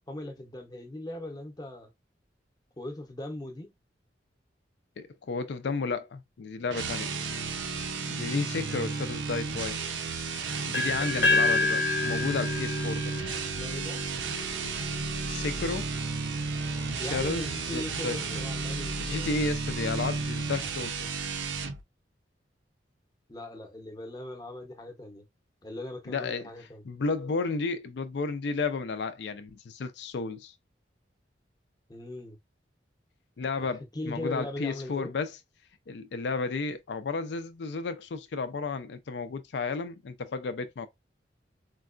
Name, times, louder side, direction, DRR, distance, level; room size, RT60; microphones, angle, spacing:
voice 1, 0.1-1.9 2.8-3.7 13.4-14.0 17.0-19.3 23.3-25.3 25.6-26.8 31.9-32.4 33.6-35.1, left 1 dB, 20° left, 0.7 m, -39 dB
voice 2, 5.0-7.1 8.1-10.0 10.6-13.2 15.2-15.9 17.0-17.5 17.7-18.4 19.0-21.2 26.1-30.5 33.4-35.4 35.9-40.9, left 4 dB, 70° left, 0.4 m, -33 dB
sound 1, 6.7-21.8, right 4 dB, 90° right, 0.6 m, -33 dB
sound 2, 10.7-14.6, left 3 dB, 85° left, 0.8 m, -28 dB
sound 3, 14.4-21.6, equal, 20° right, 0.5 m, -44 dB
4.5 x 2.2 x 2.4 m
head